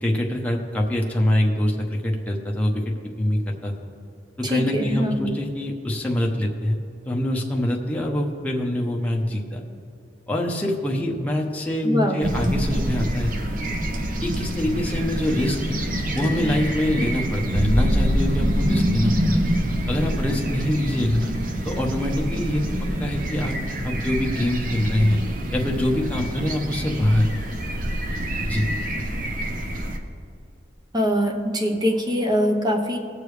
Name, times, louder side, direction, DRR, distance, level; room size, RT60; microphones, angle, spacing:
voice 1, 0.0-3.7 4.4-6.8 7.1-9.6 10.3-13.3 14.2-15.8 16.1-19.4 19.9-21.3 21.6-22.6 23.0-23.6 23.8-25.2 25.5-27.3 28.5-28.7, left 1 dB, 10° left, -1 dB, 0.9 m, -24 dB
voice 2, 4.4-5.3 11.8-12.2 30.9-33.0, equal, 25° right, 2 dB, 1.0 m, -23 dB
sound 1, 12.2-30.0, equal, 45° right, 0.9 m, -26 dB
19.0 x 6.8 x 3.3 m, 2.6 s
head